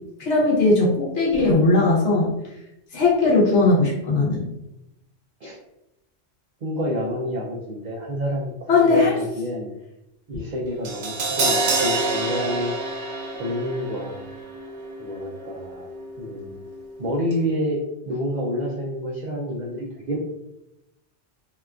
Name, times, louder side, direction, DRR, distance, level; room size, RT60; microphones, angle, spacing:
voice 1, 0.2-2.3 2.9-4.4 8.7-9.1, left 3 dB, 80° left, -4 dB, 1.2 m, -18 dB
voice 2, 6.6-9.7 10.3-12.7 13.4-14.2 15.0-16.6 17.0-17.8 18.1-20.2, equal, 60° right, -4 dB, 0.5 m, -28 dB
Crash cymbal, 10.8-17.0 17.3-17.4, right 3 dB, 90° right, 0.9 m, -28 dB
2.8 x 2.3 x 2.2 m, 0.87 s
omnidirectional pair, 1.2 m